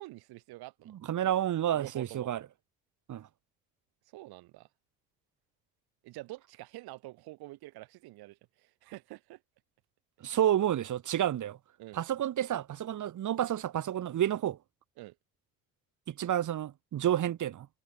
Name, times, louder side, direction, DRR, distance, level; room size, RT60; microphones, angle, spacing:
voice 1, 0.0-0.9 1.2-1.3 1.7-2.3 4.1-4.7 6.0-9.4 11.8-12.0 15.0-15.2, right 19 dB, 65° right, 3.3 m, -47 dB
voice 2, 0.9-2.4 3.1-3.3 10.2-11.6 11.9-14.6 16.1-17.7, right 11 dB, 45° right, 2.0 m, -30 dB
hypercardioid pair, 60°, 40 cm